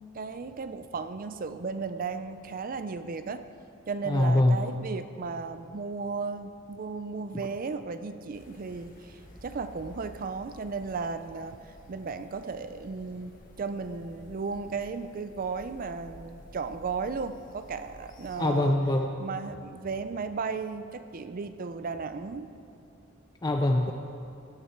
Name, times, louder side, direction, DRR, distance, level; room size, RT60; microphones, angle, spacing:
voice 1, 0.0-3.4 3.9-18.8 19.2-22.5, right 4 dB, 45° right, 10 dB, 0.5 m, -35 dB
voice 2, 4.1-4.6 18.4-19.1 23.4-23.9, left 1 dB, 20° left, 3 dB, 0.5 m, -23 dB
sound 1, 8.3-18.5, left 1 dB, 40° left, 1.4 m, -52 dB
17.5 x 9.8 x 4.5 m, 2.7 s
head